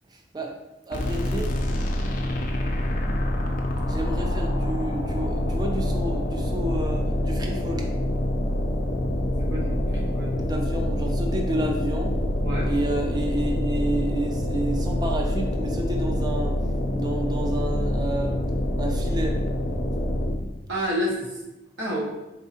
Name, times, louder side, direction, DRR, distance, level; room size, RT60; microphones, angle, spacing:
voice 1, 0.1-0.6 0.9-1.6 3.8-7.9 10.3-12.1 12.6-16.6 16.9-18.4 18.8-19.4, right 1 dB, 20° right, 1 dB, 0.4 m, -30 dB
sound 1, 0.9-20.5, left 1 dB, 45° left, 0.5 m, -26 dB
voice 2, 9.4-10.3 12.4-12.7 20.7-21.4 21.8-22.0, equal, 65° right, -5 dB, 0.8 m, -29 dB
4.0 x 3.5 x 2.8 m, 0.99 s
head